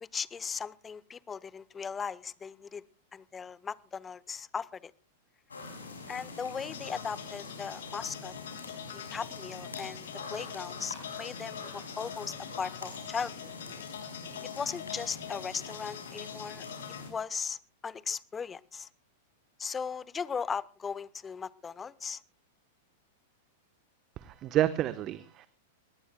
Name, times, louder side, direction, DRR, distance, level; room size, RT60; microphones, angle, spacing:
voice 1, 0.0-2.8 3.1-4.9 6.1-8.3 8.9-13.5 14.5-16.6 17.1-18.9 19.6-22.2, left 6 dB, 20° left, 19 dB, 0.8 m, -38 dB
sound 1, 5.5-17.1, left 4 dB, 85° left, 7.0 m, -44 dB
sound 2, 6.7-17.0, left 10 dB, 65° left, 2.9 m, -45 dB
voice 2, 24.2-25.5, right 13 dB, 35° right, 12 dB, 1.0 m, -29 dB
21.5 x 19.5 x 2.2 m, 0.35 s
hypercardioid pair, 100°, 0 cm